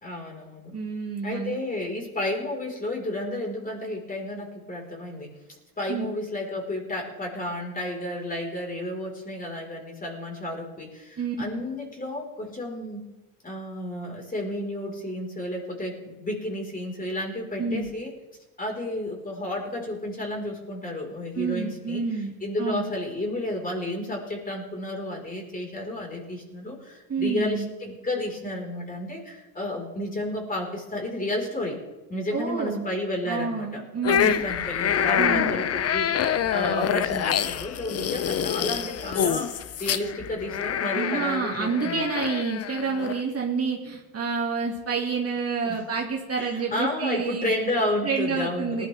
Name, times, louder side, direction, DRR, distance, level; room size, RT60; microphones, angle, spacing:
voice 1, 0.0-0.8 1.2-5.3 5.8-13.1 13.4-18.1 18.6-31.8 32.1-42.0 45.6-45.8 46.4-48.9, left 1 dB, 20° left, 0 dB, 5.0 m, -32 dB
voice 2, 0.7-1.6 5.9-6.1 11.2-11.4 17.6-17.9 21.4-22.3 22.6-22.9 27.1-27.7 32.3-32.9 33.2-34.5 35.2-35.5 40.9-47.5 48.0-48.9, right 5 dB, 30° right, -1 dB, 2.4 m, -28 dB
sound 1, 34.0-43.2, left 9 dB, 35° left, 0.8 m, -26 dB
19.0 x 12.0 x 3.6 m, 1.1 s
supercardioid pair, 85°, 46 cm